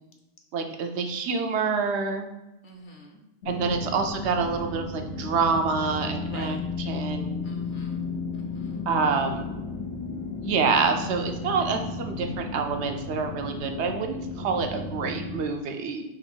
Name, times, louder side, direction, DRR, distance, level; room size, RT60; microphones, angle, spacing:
voice 1, 0.5-2.3 3.5-7.4 8.9-9.5 10.4-16.0, right 5 dB, 80° right, 5 dB, 0.9 m, -27 dB
voice 2, 2.6-3.2 6.3-6.6 7.4-8.9, left 1 dB, 55° left, 2 dB, 0.8 m, -46 dB
sound 1, 3.4-15.4, left 4 dB, 85° left, 1.3 m, -34 dB
3.9 x 3.1 x 4.4 m, 0.98 s
omnidirectional pair, 1.1 m